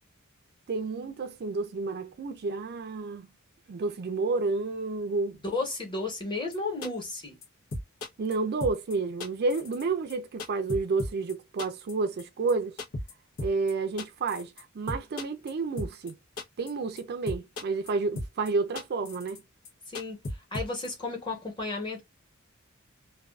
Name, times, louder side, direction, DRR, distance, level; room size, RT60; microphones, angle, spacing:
voice 1, 0.7-3.3 3.7-5.4 8.2-12.8 13.4-16.1 16.6-19.4, right 3 dB, 50° right, 0.4 m, -30 dB
voice 2, 5.5-7.4 19.9-20.2 20.5-22.0, left 3 dB, 25° left, 1.0 m, -33 dB
sound 1, 6.5-6.6 6.8-7.2 7.4-7.5 7.7-8.4 8.6-8.9 9.2-9.8 10.1-11.3 11.6-11.9 12.2-12.3 12.5-12.6 12.8-13.1 13.4-13.7 14.0-14.6 14.9-15.5 15.8-16.1 16.4-16.7 17.0-17.1 17.3-17.9 18.2-18.5 18.8-19.4 19.7-19.8 19.9-20.9, left 1 dB, 90° left, 0.8 m, -35 dB
2.4 x 2.3 x 2.2 m
head